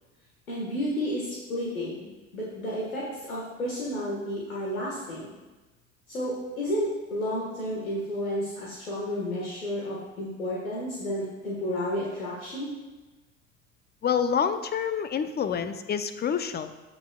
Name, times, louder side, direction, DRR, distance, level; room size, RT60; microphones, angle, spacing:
voice 1, 0.5-5.3 6.1-12.7, equal, 85° left, -6 dB, 1.5 m, -31 dB
voice 2, 14.0-16.7, left 7 dB, 25° left, 10 dB, 0.6 m, -27 dB
14.5 x 5.4 x 2.3 m, 1.2 s
figure-of-eight pair, 65°, 41 cm